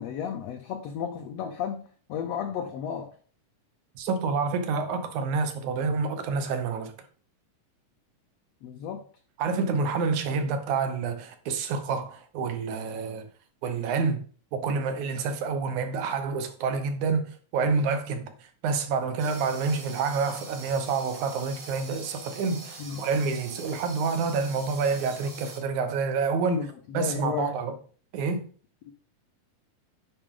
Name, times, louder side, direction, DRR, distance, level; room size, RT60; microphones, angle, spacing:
voice 1, 0.0-1.8 2.1-3.1 8.6-9.1 17.6-17.8 22.8-23.1 26.4-27.6 28.9-29.0, left 8 dB, 80° left, 1.5 m, -33 dB
voice 2, 4.0-6.9 9.4-13.2 13.6-14.2 14.5-18.3 18.6-26.6 26.9-27.7 28.1-28.5, right 4 dB, 70° right, 2.2 m, -28 dB
sound 1, 19.2-25.6, right 3 dB, 50° right, 3.5 m, -44 dB
10.0 x 5.0 x 3.7 m
omnidirectional pair, 3.8 m